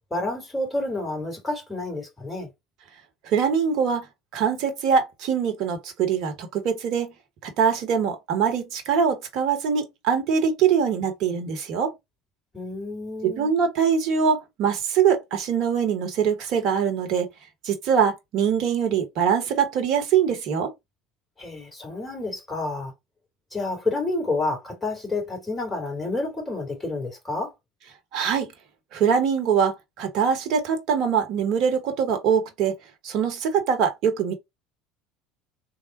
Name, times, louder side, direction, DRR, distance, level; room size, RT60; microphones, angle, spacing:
voice 1, 0.1-2.5 12.5-13.5 21.4-22.9 23.5-27.5, left 2 dB, 10° left, 2.2 m, -29 dB
voice 2, 3.2-4.1 4.3-7.1 7.4-11.9 13.2-17.3 17.6-20.7 28.1-28.5 28.9-32.7 33.0-34.3, right 7 dB, 50° right, 0.9 m, -23 dB
3.3 x 2.0 x 3.9 m
figure-of-eight pair, 65°, 0 cm